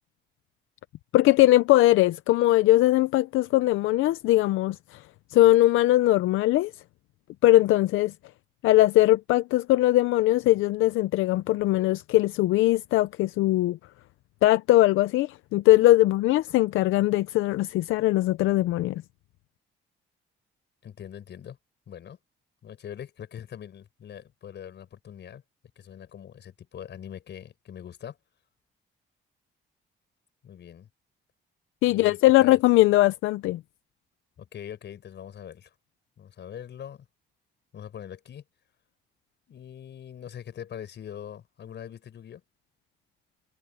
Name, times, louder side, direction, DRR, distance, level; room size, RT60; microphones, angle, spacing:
voice 1, 1.1-5.0 5.3-6.7 7.4-8.1 8.6-13.8 14.4-19.0 31.8-33.6, left 16 dB, 90° left, 0.6 m, -20 dB
voice 2, 20.8-21.6 21.9-22.2 22.6-25.4 25.8-28.2 30.4-30.9 31.9-32.6 34.4-35.7 36.2-37.1 37.7-38.4 39.5-42.4, left 9 dB, 60° left, 5.4 m, -42 dB
cardioid pair, 90°, 20 cm